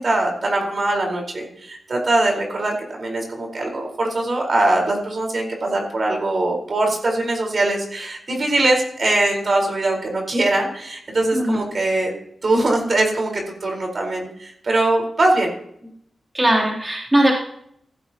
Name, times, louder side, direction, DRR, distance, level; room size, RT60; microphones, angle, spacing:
voice 1, 0.0-12.1 12.4-13.3 13.6-15.5, right 2 dB, 55° right, 1 dB, 4.7 m, -21 dB
voice 2, 16.3-17.3, right 1 dB, 20° right, -3 dB, 3.5 m, -18 dB
15.0 x 15.0 x 3.0 m, 0.70 s
cardioid pair, 60°, 0 cm